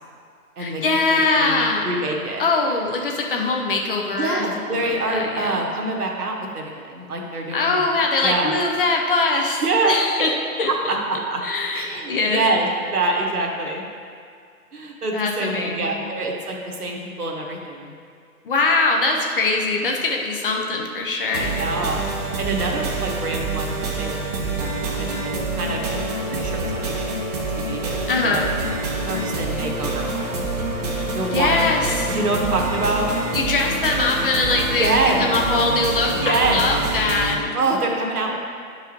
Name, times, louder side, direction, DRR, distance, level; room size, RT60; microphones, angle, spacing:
voice 1, 0.6-1.9 2.4-5.5 7.5-10.3 10.6-10.9 11.4-12.4 15.1-16.0 18.4-21.5 28.1-28.4 31.3-32.2 33.3-37.5, left 3 dB, 35° left, 1 dB, 0.7 m, -22 dB
voice 2, 1.1-2.5 4.1-7.8 8.2-8.5 9.6-10.3 10.7-11.4 11.7-13.8 14.7-17.9 21.3-22.1 22.4-26.0 26.3-27.2 27.5-28.4 29.0-30.4 31.1-31.7 32.1-33.1 34.8-35.2 36.2-36.6 37.5-38.4, right 2 dB, 75° right, 0 dB, 1.4 m, -25 dB
sound 1, 21.3-37.3, right 2 dB, 25° right, 0.7 m, -27 dB
10.0 x 4.7 x 3.0 m, 2.2 s
hypercardioid pair, 145°, 45 cm